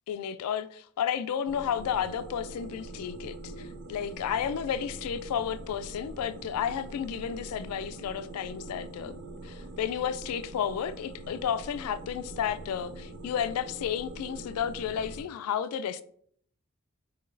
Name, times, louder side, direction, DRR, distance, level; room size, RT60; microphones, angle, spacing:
voice 1, 0.1-9.2 9.4-16.0, left 8 dB, 85° left, 0.3 m, -32 dB
sound 1, 1.5-15.2, right 2 dB, 55° right, 0.5 m, -43 dB
6.0 x 2.7 x 2.5 m
head